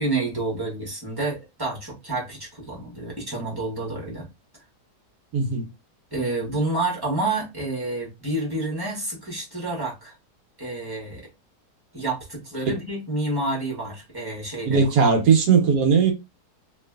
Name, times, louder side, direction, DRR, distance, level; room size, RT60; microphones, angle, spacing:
voice 1, 0.0-4.3 6.1-10.1 10.6-11.3 11.9-15.1, right 2 dB, 15° right, 1.3 m, -29 dB
voice 2, 5.3-5.7 14.6-16.1, right 6 dB, 90° right, 1.5 m, -18 dB
3.2 x 2.9 x 2.2 m
omnidirectional pair, 1.7 m